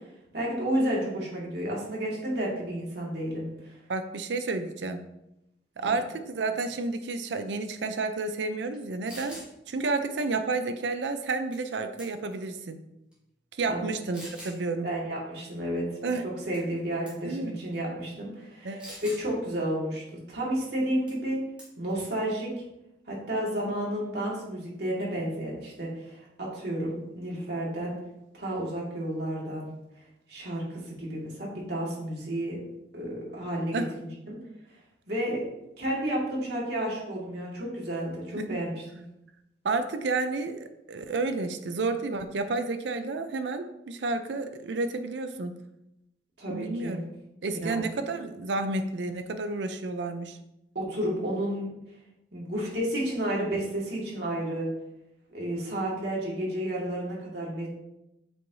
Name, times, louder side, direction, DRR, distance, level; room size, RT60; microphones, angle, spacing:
voice 1, 0.3-3.8 5.8-5.9 13.7-13.8 14.8-15.8 16.5-21.4 21.8-22.5 23.1-28.0 28.3-29.7 30.3-32.6 32.9-34.4 35.1-35.4 35.8-39.0 46.4-47.0 47.6-47.9 50.7-51.7 52.3-54.7 55.3-57.7, right 1 dB, 65° right, -4 dB, 2.0 m, -31 dB
voice 2, 3.9-5.1 5.8-9.4 9.7-12.8 13.6-14.9 16.0-16.3 17.2-17.6 18.6-18.9 33.7-33.9 38.4-38.5 39.6-45.6 46.5-47.0 47.4-50.4, right 3 dB, 80° right, 8 dB, 0.5 m, -31 dB
sound 1, 8.7-8.8 9.1-9.5 11.5-11.7 12.0-12.4 13.1-13.2 14.1-14.6 16.5-16.8 17.1-17.3 18.8-19.2 21.1-21.3 21.6-21.9, equal, 5° right, 1.6 m, -44 dB
7.6 x 4.6 x 2.7 m, 0.88 s
head